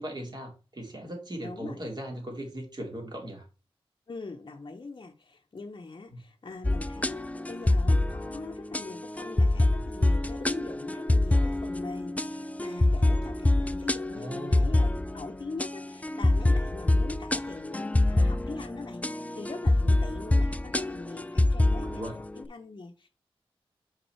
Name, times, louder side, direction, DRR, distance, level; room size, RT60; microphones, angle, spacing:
voice 1, 0.0-3.4 14.1-14.8 21.8-22.1, equal, 45° right, 2.4 m, -38 dB
voice 2, 1.4-1.8 4.1-23.1, left 3 dB, 50° left, 0.7 m, -42 dB
sound 1, 6.6-22.4, left 2 dB, 15° left, 0.4 m, -26 dB
5.3 x 4.1 x 4.4 m
cardioid pair, 60°, 10 cm